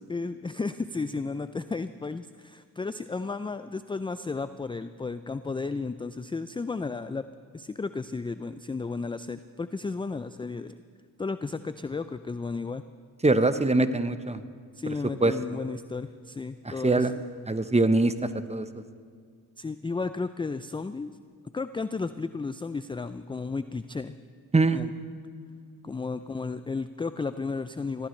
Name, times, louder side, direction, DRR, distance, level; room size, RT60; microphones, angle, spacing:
voice 1, 0.1-7.3 7.5-10.7 11.2-12.8 14.8-17.1 19.6-21.1 21.5-24.1 24.7-24.9 25.8-28.1, left 4 dB, 10° left, 12 dB, 0.4 m, -33 dB
voice 2, 13.2-14.4 15.2-15.3 16.6-17.1 17.5-18.7 24.5-24.8, right 2 dB, 15° right, 11 dB, 0.9 m, -23 dB
23.0 x 16.0 x 3.3 m, 2.1 s
supercardioid pair, 60°, 44 cm